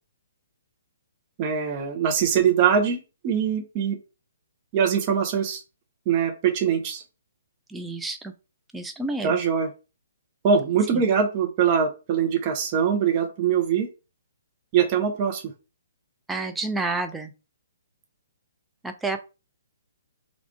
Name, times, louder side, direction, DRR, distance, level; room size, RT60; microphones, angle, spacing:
voice 1, 1.4-4.0 4.7-5.6 6.1-7.0 9.2-9.7 10.4-13.9 14.7-15.5, right 7 dB, 30° right, 4 dB, 0.8 m, -22 dB
voice 2, 7.7-8.3 8.7-9.4 10.9-11.0 16.3-17.3 18.8-19.2, right 3 dB, 5° right, 6 dB, 0.4 m, -29 dB
3.5 x 2.4 x 3.4 m, 0.31 s
figure-of-eight pair, 125°, 0 cm